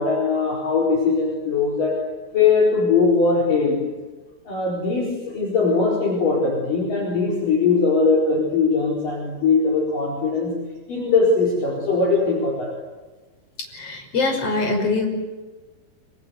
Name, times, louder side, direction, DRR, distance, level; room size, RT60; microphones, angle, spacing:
voice 1, 0.0-2.0 2.3-3.8 4.5-10.6 10.9-12.7, left 4 dB, 45° left, -2 dB, 5.8 m, -20 dB
voice 2, 13.7-15.1, left 3 dB, 30° left, 3 dB, 6.6 m, -23 dB
27.0 x 27.0 x 8.2 m, 1.3 s
omnidirectional pair, 5.4 m